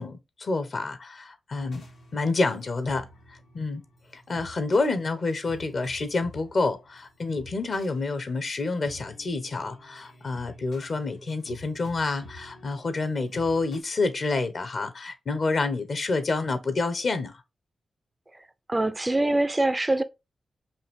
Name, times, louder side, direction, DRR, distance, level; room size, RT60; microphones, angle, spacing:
voice 1, 0.0-1.8 2.1-3.1 3.5-3.8 4.1-17.4, left 3 dB, 60° left, 1.0 m, -28 dB
sound 1, 1.6-13.8, equal, 90° left, 1.9 m, -50 dB
voice 2, 18.7-20.0, right 2 dB, 25° right, 0.5 m, -24 dB
5.6 x 2.5 x 3.6 m
supercardioid pair, 45°, 0 cm